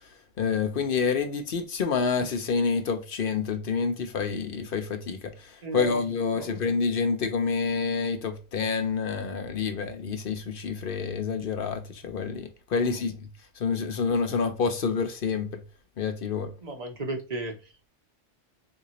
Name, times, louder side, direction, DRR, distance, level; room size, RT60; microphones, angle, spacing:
voice 1, 0.4-13.3 13.6-15.6 16.0-16.5, left 5 dB, 55° left, 0.8 m, -28 dB
voice 2, 5.6-6.0 6.3-6.5 16.6-17.6, right 2 dB, 40° right, 0.8 m, -34 dB
3.7 x 2.8 x 2.8 m
omnidirectional pair, 1.2 m